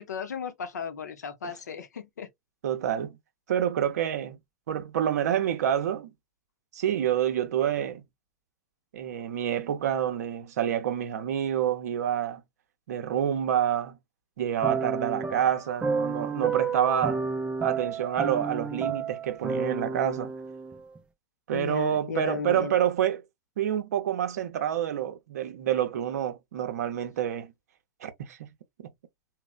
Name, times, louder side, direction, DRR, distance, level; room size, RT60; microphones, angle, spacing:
voice 1, 0.0-2.3 21.5-22.7, left 6 dB, 80° left, 0.6 m, -35 dB
voice 2, 2.6-3.2 3.5-4.4 4.7-6.1 6.7-8.0 8.9-12.4 12.9-14.0 14.4-17.2 17.6-20.3 21.5-23.2 23.6-27.5 28.0-28.5, right 10 dB, 70° right, 0.6 m, -28 dB
sound 1, 14.6-21.0, right 5 dB, 10° right, 0.4 m, -31 dB
3.0 x 2.0 x 2.3 m
hypercardioid pair, 105°, 9 cm